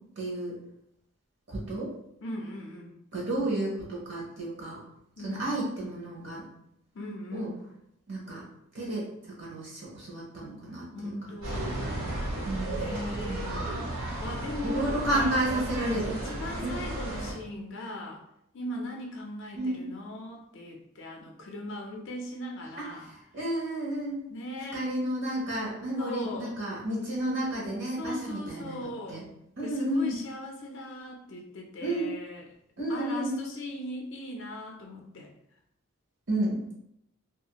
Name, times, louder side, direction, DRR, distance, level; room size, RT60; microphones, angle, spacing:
voice 1, 0.2-0.5 1.5-1.9 3.1-4.8 5.2-6.4 7.3-7.5 8.1-8.4 8.7-9.0 9.4-11.1 11.6-11.7 12.4-13.9 14.6-16.2 16.6-16.7 19.6-19.9 22.8-22.9 23.3-24.2 24.7-29.2 29.6-30.1 31.8-32.1 32.8-33.4 36.3-36.6, right 1 dB, 55° right, -4 dB, 0.7 m, -31 dB
voice 2, 2.2-2.9 5.2-5.5 6.9-7.6 10.9-12.1 12.7-13.5 14.2-15.4 16.1-18.2 18.5-23.1 24.3-24.8 26.0-26.5 27.9-29.2 29.6-32.5 32.9-35.3, left 1 dB, 55° left, 0 dB, 0.4 m, -39 dB
sound 1, 11.4-17.3, right 1 dB, 80° right, 1.2 m, -34 dB
2.4 x 2.4 x 2.8 m, 0.77 s
head